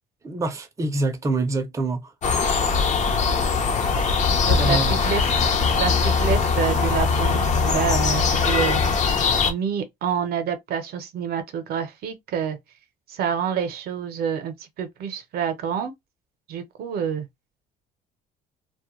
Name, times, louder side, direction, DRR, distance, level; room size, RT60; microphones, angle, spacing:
voice 1, 0.2-2.1 4.5-4.9, right 2 dB, 20° right, 0.5 m, -25 dB
sound 1, 2.2-9.5, left 5 dB, 45° left, 0.7 m, -21 dB
voice 2, 4.4-5.2 5.5-8.8 9.5-12.6 13.1-15.9 16.5-17.3, right 7 dB, 65° right, 0.6 m, -28 dB
2.2 x 2.1 x 2.9 m
cardioid pair, 110°, 17 cm